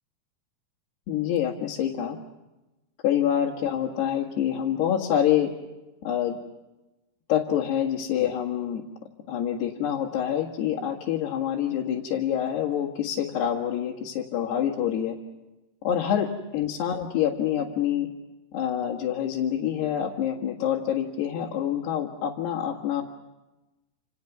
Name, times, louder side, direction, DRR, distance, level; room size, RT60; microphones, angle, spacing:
voice 1, 1.1-2.2 3.0-5.5 6.0-6.4 7.3-8.8 9.3-15.2 15.8-18.1 18.5-23.0, left 10 dB, 80° left, -3 dB, 4.0 m, -26 dB
29.0 x 28.5 x 6.1 m, 1.1 s
omnidirectional pair, 4.7 m